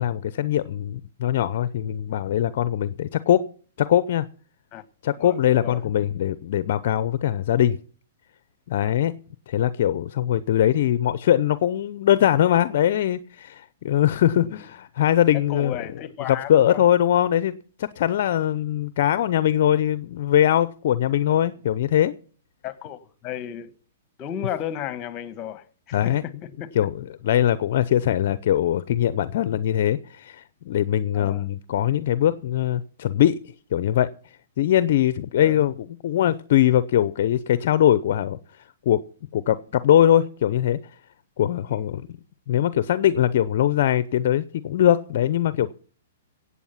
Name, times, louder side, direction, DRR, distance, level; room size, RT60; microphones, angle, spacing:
voice 1, 0.0-3.5 3.8-4.3 5.0-7.8 8.7-9.1 9.5-15.8 16.3-22.1 25.9-26.2 26.7-33.4 33.7-34.1 34.6-38.4 38.9-39.0 39.3-40.8 41.4-42.1 42.5-45.7, left 11 dB, 60° left, 0.6 m, -21 dB
voice 2, 5.2-5.8 14.4-14.7 15.5-16.8 22.6-23.7 24.2-26.7 31.1-31.5 35.4-35.6 41.7-41.9, left 10 dB, 30° left, 1.4 m, -34 dB
16.5 x 8.5 x 5.8 m
hypercardioid pair, 130°, 0 cm